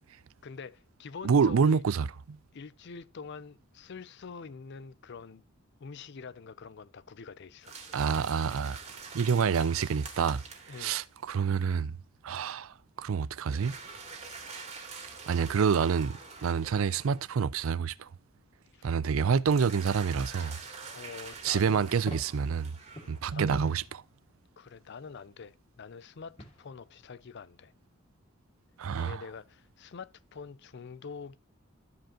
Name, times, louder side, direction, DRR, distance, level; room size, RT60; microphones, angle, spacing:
voice 1, 0.4-1.8 2.5-5.4 5.8-7.8 9.5-9.6 10.7-11.0 18.7-18.9 20.8-21.9 23.0-23.9 24.6-27.7 28.9-31.4, left 5 dB, 55° left, 0.5 m, -45 dB
voice 2, 1.2-2.4 7.9-8.8 9.1-10.4 10.8-11.9 12.2-13.7 15.3-16.1 16.4-18.1 18.8-20.6 21.4-22.7 23.1-23.8 28.8-29.2, right 6 dB, 75° right, 0.4 m, -27 dB
sound 1, 7.6-11.2 13.5-17.4 19.5-23.4, right 4 dB, 35° right, 2.2 m, -46 dB
sound 2, 21.3-24.8 26.4-27.1, equal, 30° left, 2.2 m, -50 dB
13.5 x 5.1 x 2.9 m
head